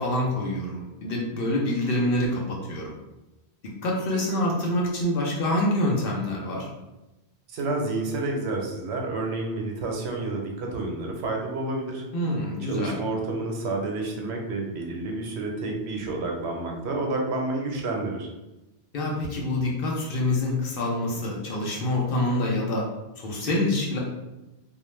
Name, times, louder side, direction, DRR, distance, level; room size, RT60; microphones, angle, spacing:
voice 1, 0.0-2.9 3.8-6.7 12.1-13.0 18.9-22.8 23.2-24.0, left 1 dB, 60° left, -2 dB, 0.8 m, -26 dB
voice 2, 7.5-12.0 12.7-18.3, right 2 dB, 85° right, 1 dB, 0.9 m, -29 dB
2.3 x 2.1 x 3.0 m, 1.0 s
omnidirectional pair, 1.1 m